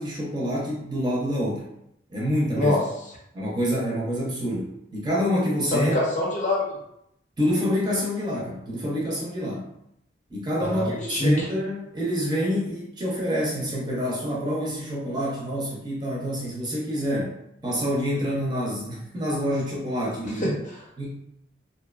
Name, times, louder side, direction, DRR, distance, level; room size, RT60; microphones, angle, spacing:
voice 1, 0.0-1.7 2.1-2.7 3.3-5.9 7.4-9.7 10.3-17.3 17.6-20.4 21.0-21.2, equal, 20° right, -4 dB, 0.5 m, -27 dB
voice 2, 5.7-6.8 10.6-11.5 20.4-20.8, left 1 dB, 40° left, -4 dB, 0.6 m, -24 dB
2.6 x 2.1 x 2.3 m, 0.78 s
head